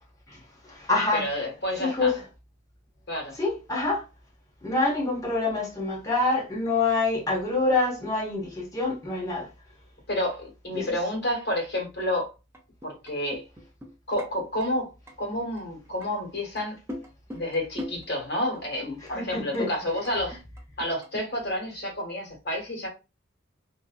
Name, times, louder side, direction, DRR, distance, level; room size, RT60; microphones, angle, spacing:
voice 1, 0.3-1.3 1.8-2.2 3.3-4.1 4.6-9.5 10.7-11.0 19.1-19.7, left 3 dB, 15° left, 1.0 m, -26 dB
voice 2, 1.1-2.1 3.1-3.3 10.1-12.3 12.8-13.5 14.1-14.9 15.2-16.8 17.3-20.4 20.8-22.9, left 1 dB, 55° left, 1.4 m, -30 dB
sound 1, 12.5-14.3 14.6-14.7 15.1-15.2 15.6-16.1 16.6-18.1 18.6-18.7 19.1-19.2 19.5-21.2, left 1 dB, 10° right, 0.5 m, -40 dB
2.8 x 2.7 x 2.3 m
head